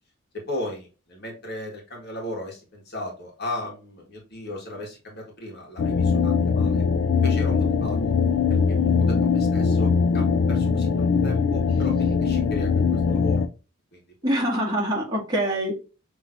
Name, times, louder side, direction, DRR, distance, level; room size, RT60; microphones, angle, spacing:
voice 1, 0.3-6.8 7.2-8.1 8.7-13.4 13.9-14.0, left 1 dB, 55° left, -1 dB, 1.6 m, -36 dB
sound 1, 5.8-13.5, left 5 dB, 80° left, 0.4 m, -21 dB
voice 2, 14.2-15.7, right 1 dB, 20° right, -4 dB, 1.9 m, -24 dB
5.9 x 3.2 x 2.5 m, 0.32 s
head